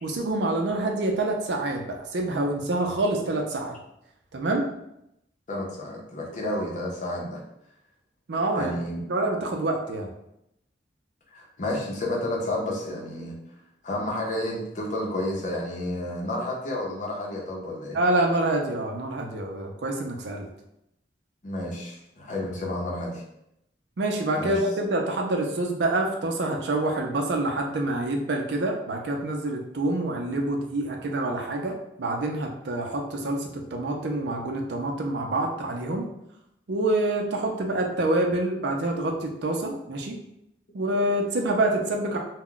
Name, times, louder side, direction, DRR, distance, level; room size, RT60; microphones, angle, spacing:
voice 1, 0.0-3.8 4.3-4.6 8.3-8.7 9.1-10.1 17.9-20.5 24.0-31.7 32.0-36.1 36.7-40.2 40.7-42.2, right 2 dB, 75° right, 2 dB, 0.5 m, -26 dB
voice 2, 5.5-7.4 8.5-9.0 11.3-13.3 13.8-18.0 21.4-23.2 24.4-24.6 27.4-27.5, left 1 dB, 45° left, -2 dB, 0.7 m, -31 dB
2.2 x 2.2 x 3.7 m, 0.81 s
head